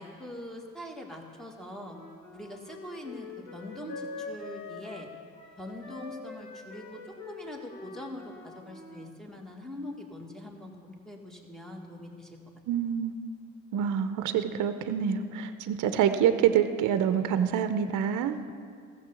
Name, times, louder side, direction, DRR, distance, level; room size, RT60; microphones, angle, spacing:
voice 1, 0.0-2.0 2.3-5.1 5.6-12.4, left 1 dB, ahead, 1 dB, 1.8 m, -43 dB
Wind instrument woodwind instrument, 1.8-9.1, left 4 dB, 55° left, 1.8 m, -44 dB
voice 2, 12.7-13.1 13.7-18.4, right 9 dB, 65° right, 9 dB, 0.8 m, -26 dB
14.5 x 6.9 x 7.0 m, 2.2 s
supercardioid pair, 85°, 34 cm